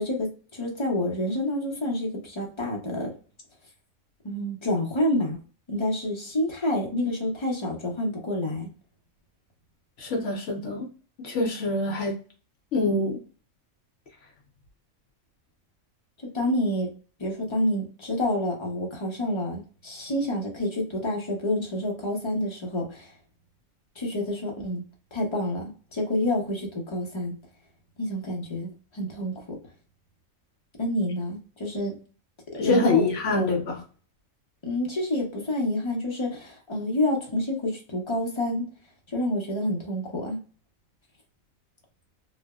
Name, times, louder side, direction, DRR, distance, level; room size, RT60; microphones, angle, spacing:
voice 1, 0.0-3.1 4.2-5.4 5.7-8.7 16.3-16.9 17.2-23.1 24.0-24.8 25.1-27.4 28.0-29.6 30.8-32.0 32.5-33.0 33.3-33.6 34.6-38.6 39.1-40.4, left 1 dB, 30° left, 0.5 m, -28 dB
voice 2, 10.0-10.9 11.2-12.1 12.7-13.2 32.5-33.8, left 2 dB, 65° left, 0.9 m, -25 dB
3.2 x 2.0 x 2.2 m
omnidirectional pair, 1.4 m